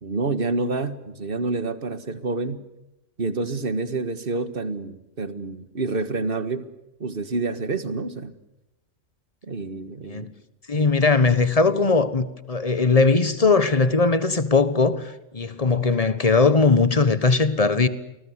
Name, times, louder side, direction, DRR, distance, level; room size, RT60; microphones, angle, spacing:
voice 1, 0.0-2.6 3.2-6.6 7.0-8.3 9.5-10.3 10.7-10.9, right 3 dB, 40° right, 1.8 m, -28 dB
voice 2, 10.7-17.9, left 4 dB, 25° left, 1.4 m, -19 dB
29.0 x 20.0 x 8.1 m
omnidirectional pair, 1.5 m